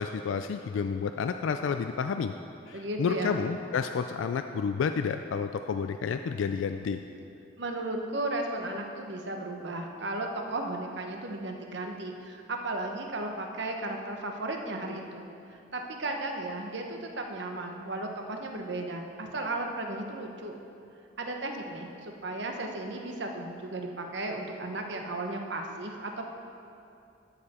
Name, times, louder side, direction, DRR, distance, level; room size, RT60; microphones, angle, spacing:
voice 1, 0.0-2.3 2.7-7.0, left 6 dB, 80° left, 8 dB, 0.3 m, -30 dB
voice 2, 2.7-3.4 7.6-20.6 21.2-26.2, right 2 dB, 65° right, 3 dB, 0.9 m, -35 dB
13.0 x 6.7 x 4.2 m, 2.6 s
head